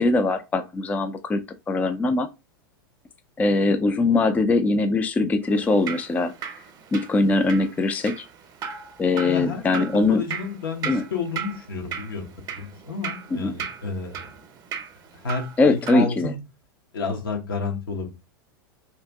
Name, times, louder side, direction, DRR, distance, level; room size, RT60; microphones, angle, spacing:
voice 1, 0.0-1.4 1.7-2.3 3.4-6.3 6.9-8.2 9.0-10.2 10.9-11.0 13.4-13.5 15.6-16.3, left 3 dB, 15° left, 0.3 m, -21 dB
Drip, 5.4-16.1, right 8 dB, 35° right, 0.7 m, -37 dB
voice 2, 9.2-14.3 15.1-16.4 16.9-18.1, left 4 dB, 75° left, 1.0 m, -31 dB
2.8 x 2.5 x 3.4 m
hypercardioid pair, 95°, 12 cm